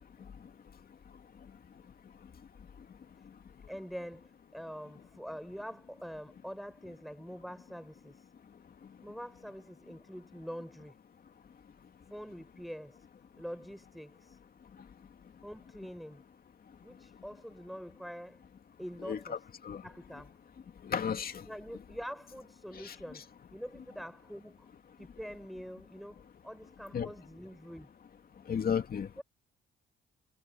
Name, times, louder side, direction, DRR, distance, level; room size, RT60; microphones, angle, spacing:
voice 1, 3.7-8.3 9.0-11.0 12.1-13.1 13.4-14.4 15.4-16.2 16.8-18.4 18.8-19.4 19.8-20.4 21.4-23.3 23.5-24.7 25.0-27.9 29.2-29.3, equal, ahead, 6.3 m, -45 dB
voice 2, 19.1-19.4 19.6-19.8 20.8-21.4 22.7-23.2 26.9-27.1 28.5-29.1, left 7 dB, 50° left, 2.4 m, -33 dB
cardioid pair, 90°, 20 cm